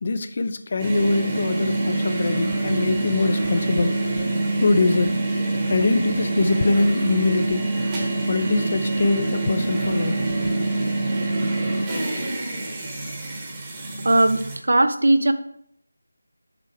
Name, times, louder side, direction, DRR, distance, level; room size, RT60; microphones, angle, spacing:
voice 1, 0.0-4.0 4.6-5.1 5.7-7.8 8.3-10.3, left 3 dB, 40° left, 10 dB, 0.5 m, -23 dB
sound 1, 0.8-14.6, right 2 dB, 15° right, 1.1 m, -25 dB
voice 2, 14.0-15.3, right 1 dB, 70° right, 11 dB, 0.6 m, -18 dB
7.5 x 4.6 x 4.8 m, 0.69 s
figure-of-eight pair, 165°, 0 cm